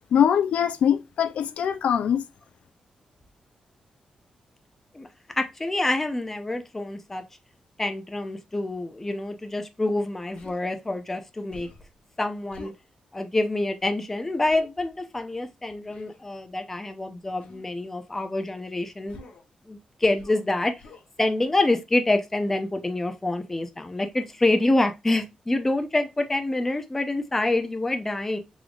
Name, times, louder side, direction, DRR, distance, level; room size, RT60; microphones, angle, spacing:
voice 1, 0.1-2.2, left 8 dB, 85° left, 0.4 m, -22 dB
voice 2, 5.4-7.2 7.8-11.7 12.2-12.7 13.1-19.2 19.7-20.7 21.2-28.4, left 2 dB, 15° left, 0.5 m, -26 dB
Human voice, 10.4-10.6 11.5-11.9 12.5-12.8 14.5-14.7 15.9-16.2 17.4-17.7 19.1-19.5 20.1-20.5 20.8-21.1, left 2 dB, 65° left, 0.9 m, -46 dB
3.7 x 3.4 x 2.3 m
wide cardioid pair, 155°, 2 cm